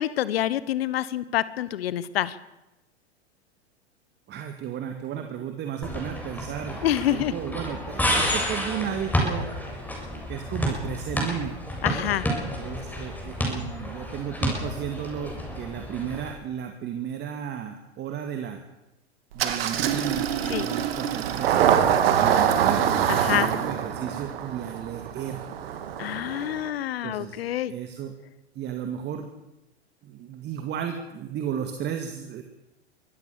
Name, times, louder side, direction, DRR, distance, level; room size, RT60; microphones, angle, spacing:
voice 1, 0.0-2.3 6.8-7.3 11.8-12.3 20.5-20.7 23.2-23.5 26.0-27.7, left 12 dB, 60° left, 17 dB, 1.4 m, -27 dB
voice 2, 4.3-6.8 7.1-9.5 10.3-11.6 12.6-18.6 19.3-22.9 23.1-25.5 27.0-27.4 27.7-28.1 28.5-29.3 30.0-32.4, right 9 dB, 30° right, 6 dB, 2.2 m, -34 dB
sound 1, 5.8-16.3, equal, 5° left, 7.7 m, -30 dB
Engine starting, 19.4-26.7, right 9 dB, 60° right, 2.4 m, -25 dB
24.0 x 16.5 x 7.1 m, 0.97 s
figure-of-eight pair, 95°, 33 cm